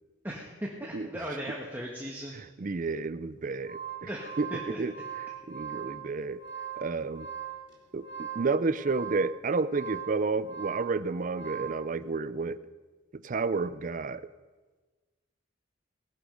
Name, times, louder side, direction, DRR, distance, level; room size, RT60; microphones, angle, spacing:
voice 1, 0.2-2.3 4.1-4.8, equal, 10° right, -2 dB, 1.4 m, -38 dB
voice 2, 2.3-4.1 4.4-4.9 5.5-6.4 6.8-7.3 7.9-12.6 13.1-14.3, right 4 dB, 40° right, 14 dB, 0.5 m, -31 dB
sound 1, 3.4-11.8, right 9 dB, 60° left, 3.6 m, -41 dB
18.5 x 11.5 x 5.2 m, 1.3 s
head